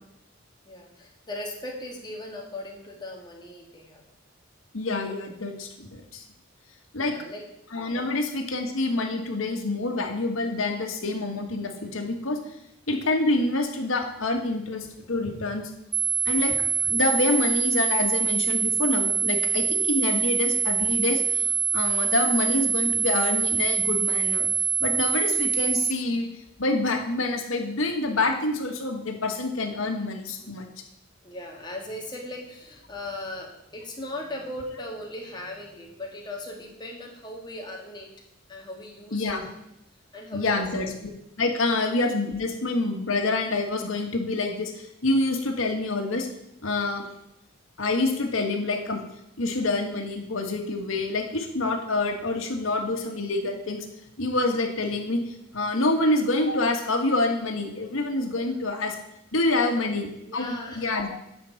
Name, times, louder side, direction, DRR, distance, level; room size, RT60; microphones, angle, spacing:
voice 1, 0.7-4.0 7.0-7.4 7.9-8.1 31.2-38.1 38.5-39.3 40.1-40.6 58.4-58.5 59.7-59.9 60.2-61.0, left 1 dB, 20° left, -1 dB, 2.1 m, -38 dB
voice 2, 4.7-6.2 6.9-7.1 7.7-12.4 12.9-15.7 16.2-16.6 16.8-24.5 24.8-26.3 26.6-30.7 39.1-39.5 40.3-41.1 41.4-46.3 46.6-47.0 47.8-49.0 49.4-53.9 54.2-59.0 59.3-60.1 60.3-61.1, left 2 dB, 85° left, 3 dB, 1.5 m, -27 dB
sound 1, 15.9-25.9, right 7 dB, 20° right, 0.4 m, -25 dB
9.4 x 4.7 x 7.7 m, 0.82 s
head